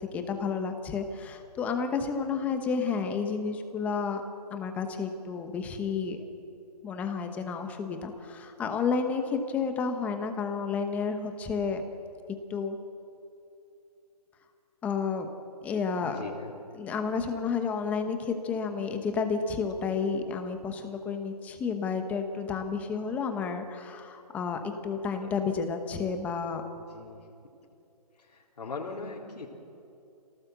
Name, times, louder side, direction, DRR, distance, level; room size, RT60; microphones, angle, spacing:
voice 1, 0.1-4.2 4.5-6.2 6.8-11.8 12.5-12.8 14.8-15.3 15.6-16.2 16.8-26.6, left 5 dB, 5° left, 6 dB, 1.0 m, -31 dB
voice 2, 16.0-16.5 25.2-25.3 26.8-27.3 28.2-29.5, left 4 dB, 75° left, -4 dB, 3.8 m, -40 dB
26.0 x 18.0 x 8.1 m, 2.7 s
hypercardioid pair, 170°, 21 cm